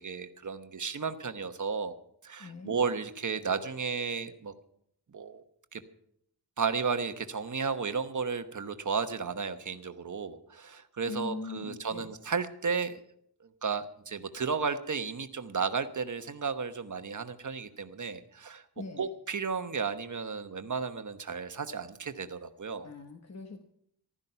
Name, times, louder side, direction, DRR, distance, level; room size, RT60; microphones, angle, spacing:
voice 1, 0.0-2.0 2.2-4.5 5.1-5.4 5.7-5.8 6.6-13.0 13.6-18.6 19.0-22.9, right 5 dB, 45° right, 8 dB, 1.1 m, -33 dB
voice 2, 2.4-2.7 11.1-12.1 18.8-19.1 22.8-23.6, left 3 dB, 40° left, 5 dB, 1.1 m, -41 dB
15.0 x 12.5 x 5.7 m, 0.70 s
wide cardioid pair, 155°, 41 cm